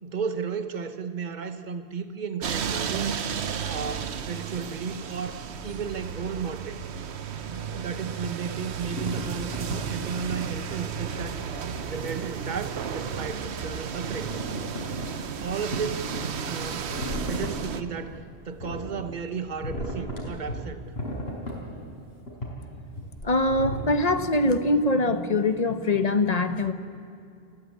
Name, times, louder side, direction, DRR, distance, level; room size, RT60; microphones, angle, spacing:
voice 1, 0.0-3.2 3.7-6.8 7.4-11.4 11.9-14.4 15.4-16.9 17.2-18.2 18.4-20.8, right 6 dB, 45° right, 9 dB, 1.1 m, -34 dB
sound 1, 2.4-17.8, right 7 dB, 80° right, 1.2 m, -33 dB
sound 2, 8.9-9.8 10.3-10.6 11.0-11.1 11.9-12.3 12.8-13.3 13.6-13.7 14.1-15.1 15.4-15.5 15.7-17.5 18.0-19.1 19.6-20.6 21.0-21.9 22.2-22.5 23.0-24.0, equal, 70° left, 5.0 m, -35 dB
voice 2, 23.2-26.7, left 2 dB, 40° left, 10 dB, 1.1 m, -23 dB
29.0 x 15.0 x 8.4 m, 2.6 s
omnidirectional pair, 1.1 m